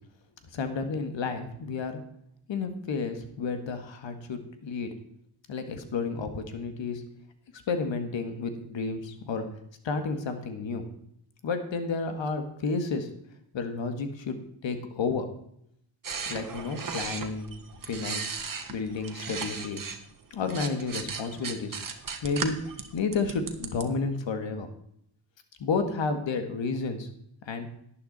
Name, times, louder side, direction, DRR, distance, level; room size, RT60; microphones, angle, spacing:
voice 1, 0.5-2.0 2.5-4.9 5.5-7.0 7.7-9.4 9.8-10.9 11.4-13.1 13.5-14.4 14.6-15.3 16.3-17.5 17.9-18.4 18.7-19.8 20.3-21.8 22.2-22.6 22.9-24.7 25.6-27.1 27.4-27.7, left 4 dB, 65° left, 8 dB, 1.9 m, -31 dB
sound 1, 16.0-20.0 20.3-23.8, right 5 dB, 40° right, 1.6 m, -36 dB
11.5 x 9.7 x 4.2 m, 0.74 s
supercardioid pair, 50°, 49 cm